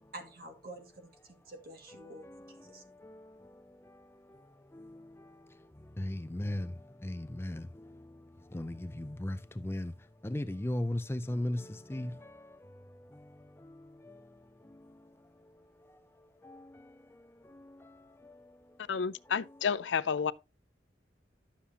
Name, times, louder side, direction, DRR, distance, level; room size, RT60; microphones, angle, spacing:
voice 1, 0.1-2.8, right 2 dB, 55° right, 2.1 m, -49 dB
voice 2, 6.0-6.7 7.0-7.6 8.5-9.4 9.6-9.9 10.2-11.6 11.9-12.1, left 1 dB, 15° left, 0.4 m, -34 dB
voice 3, 18.9-20.3, left 6 dB, 85° left, 0.5 m, -30 dB
11.5 x 7.0 x 2.9 m
head